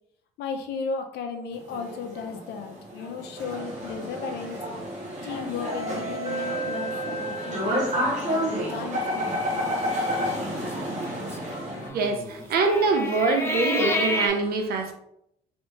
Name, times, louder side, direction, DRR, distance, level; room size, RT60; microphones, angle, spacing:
voice 1, 0.4-4.6 5.2-9.8, left 5 dB, 75° left, 0.7 m, -35 dB
sound 1, 1.5-11.9, equal, 45° right, 1.1 m, -30 dB
sound 2, 5.5-7.2 7.6-7.8 8.0-8.4 8.8-9.1 10.0-14.3, left 1 dB, 15° left, 0.5 m, -32 dB
voice 2, 11.9-14.9, right 3 dB, 65° right, 0.8 m, -24 dB
3.2 x 3.1 x 3.1 m
cardioid pair, 110°, 17 cm